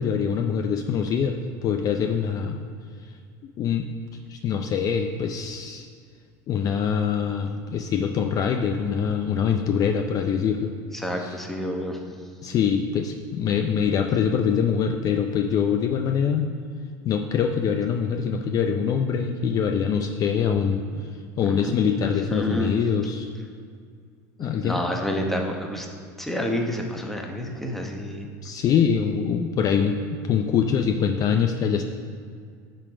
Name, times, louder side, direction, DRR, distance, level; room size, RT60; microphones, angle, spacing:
voice 1, 0.0-2.6 3.6-3.9 4.3-5.9 6.5-10.7 11.2-11.3 12.4-16.5 17.0-20.8 21.4-23.3 24.4-24.8 28.4-31.8, left 7 dB, 40° left, 5 dB, 0.5 m, -24 dB
voice 2, 10.9-12.0 20.9-21.0 21.4-21.8 22.0-22.8 24.4-25.9 26.2-28.3, left 1 dB, 5° left, 2 dB, 1.0 m, -29 dB
11.0 x 3.9 x 5.0 m, 2.1 s
supercardioid pair, 110°, 9 cm